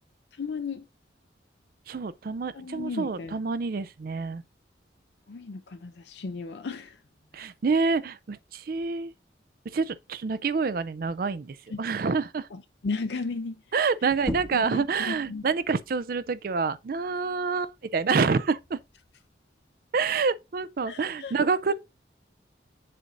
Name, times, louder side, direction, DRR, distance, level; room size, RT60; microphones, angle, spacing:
voice 1, 0.3-0.9 2.5-3.4 5.3-7.0 7.3-7.5 11.7-11.8 12.5-13.6 14.0-14.1 14.5-15.4 20.9-21.3 21.7-21.8, left 4 dB, 65° left, 0.5 m, -35 dB
voice 2, 1.9-4.4 7.3-9.1 9.7-12.5 13.7-18.8 19.9-21.7, right 4 dB, 50° right, 0.4 m, -27 dB
sound 1, 14.1-19.3, equal, 5° left, 0.7 m, -41 dB
7.6 x 2.6 x 5.3 m
head